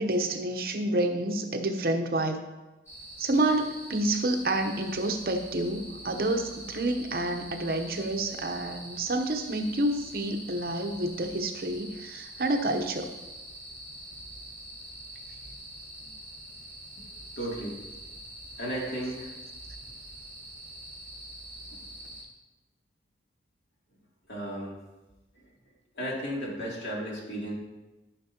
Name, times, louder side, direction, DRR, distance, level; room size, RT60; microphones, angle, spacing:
voice 1, 0.0-2.4 3.2-13.1, right 1 dB, 55° right, 5 dB, 0.8 m, -29 dB
sound 1, 2.9-22.2, right 1 dB, 15° left, 2.5 m, -45 dB
voice 2, 17.4-17.8 18.6-19.3 21.7-21.8 24.3-24.8 25.9-27.5, equal, 85° left, -4 dB, 2.6 m, -34 dB
13.5 x 5.9 x 2.8 m, 1.1 s
head